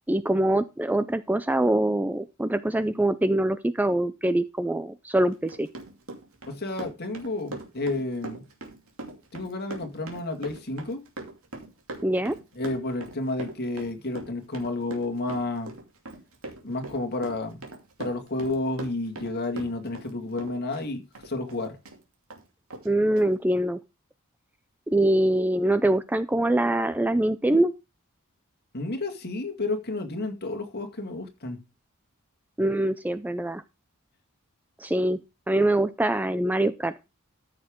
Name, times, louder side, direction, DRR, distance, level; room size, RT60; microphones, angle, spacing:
voice 1, 0.1-5.7 12.0-12.4 22.8-23.8 24.9-27.7 32.6-33.6 34.8-35.2 35.5-36.9, right 1 dB, 10° right, 0.4 m, -24 dB
Run, 5.3-20.1 20.4-22.0 22.3-22.4 22.7-22.9 23.2-23.3, right 2 dB, 70° right, 2.7 m, -40 dB
voice 2, 6.5-8.4 9.3-11.1 12.6-15.7 16.6-17.6 18.0-21.8 28.7-31.6, left 2 dB, 50° left, 2.1 m, -31 dB
14.0 x 6.7 x 3.7 m
head